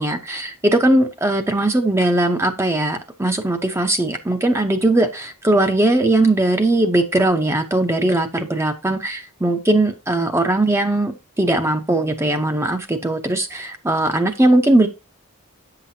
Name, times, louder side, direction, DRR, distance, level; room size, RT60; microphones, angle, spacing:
voice 1, 0.0-14.9, right 1 dB, 10° right, 6 dB, 0.7 m, -19 dB
8.4 x 5.8 x 2.7 m, 0.29 s
head